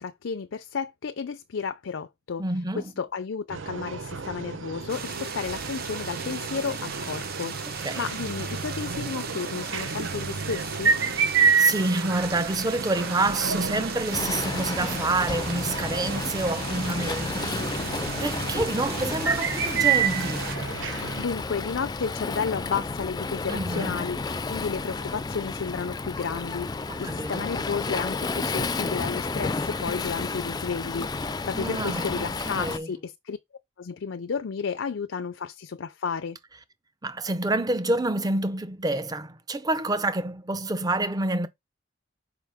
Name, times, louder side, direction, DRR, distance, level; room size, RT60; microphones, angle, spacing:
voice 1, 0.0-2.4 3.0-10.9 21.1-33.4 33.8-36.4, left 5 dB, 75° left, 0.5 m, -32 dB
voice 2, 2.4-2.9 7.8-8.1 11.6-17.7 18.2-20.5 23.5-24.0 26.9-27.5 31.5-32.9 37.0-41.5, right 2 dB, 20° right, 0.6 m, -28 dB
sound 1, 3.5-21.3, right 6 dB, 80° right, 0.9 m, -29 dB
sound 2, 4.9-20.6, right 6 dB, 50° right, 1.0 m, -37 dB
Waves surf, 14.1-32.8, left 3 dB, 20° left, 0.4 m, -32 dB
5.8 x 5.0 x 3.5 m
head